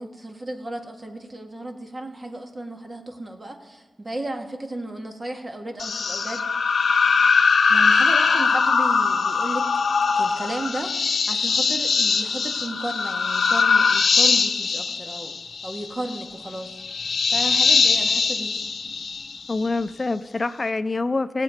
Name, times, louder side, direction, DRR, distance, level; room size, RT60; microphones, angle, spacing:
voice 1, 0.0-6.4 7.7-9.7 10.2-18.6, right 1 dB, 35° right, 3 dB, 1.7 m, -34 dB
sound 1, 5.8-19.7, left 5 dB, 70° left, 0.8 m, -21 dB
voice 2, 19.5-21.4, left 3 dB, 40° left, 13 dB, 0.4 m, -25 dB
17.0 x 7.5 x 5.1 m, 1.4 s
cardioid pair, 55°, 0 cm